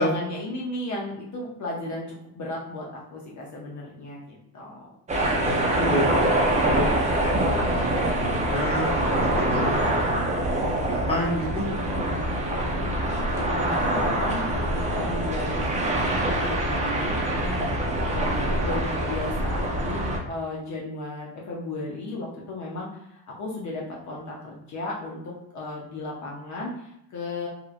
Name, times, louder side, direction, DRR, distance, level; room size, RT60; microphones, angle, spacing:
voice 1, 0.0-4.9 11.8-20.0 20.3-27.5, left 2 dB, 45° left, -3 dB, 0.7 m, -35 dB
sound 1, 5.1-20.2, right 1 dB, 20° right, 0.5 m, -25 dB
voice 2, 5.4-6.1 6.7-10.5 10.9-11.7, equal, 15° left, -5 dB, 0.8 m, -30 dB
2.9 x 2.5 x 2.4 m, 0.81 s
cardioid pair, 125°, 39 cm